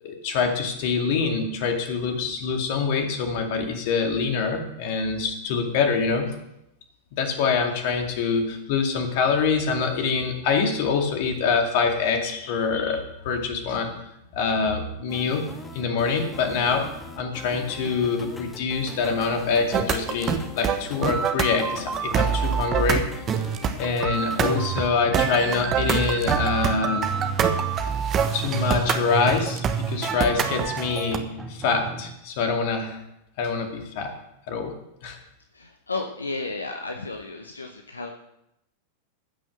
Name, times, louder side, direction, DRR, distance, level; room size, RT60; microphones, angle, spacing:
voice 1, 0.0-6.3 7.2-13.9 14.3-15.5 15.7-16.9 17.2-23.1 23.8-27.1 28.3-33.0 33.4-34.1 34.5-34.7 35.0-35.2, left 5 dB, 50° left, 4 dB, 2.3 m, -25 dB
sound 1, 15.1-24.7, left 3 dB, 15° left, 1.7 m, -41 dB
sound 2, 19.7-31.2, right 7 dB, 30° right, 1.1 m, -25 dB
sound 3, 25.0-32.0, right 4 dB, 15° right, 2.2 m, -38 dB
voice 2, 35.5-38.1, left 3 dB, 80° left, 4 dB, 1.0 m, -33 dB
15.5 x 6.2 x 6.5 m, 0.83 s
figure-of-eight pair, 90°, 0 cm